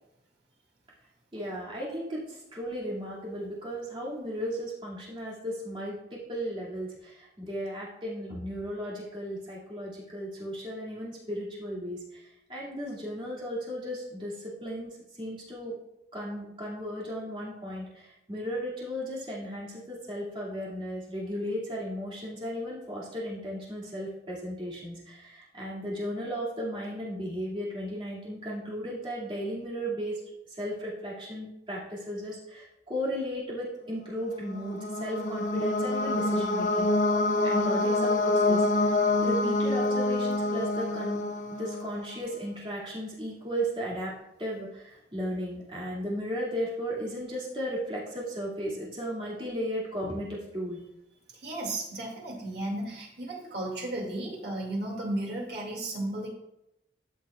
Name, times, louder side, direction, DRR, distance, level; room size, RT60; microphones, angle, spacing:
voice 1, 1.3-12.2 12.5-15.7 16.1-30.2 30.5-36.9 37.4-41.2 41.5-44.1 44.4-50.8, equal, 30° right, -6 dB, 2.4 m, -35 dB
sound 1, 34.4-42.1, left 2 dB, 45° left, 0.5 m, -26 dB
voice 2, 51.3-56.3, right 1 dB, 65° right, -2 dB, 2.3 m, -34 dB
13.0 x 5.8 x 2.4 m, 0.84 s
head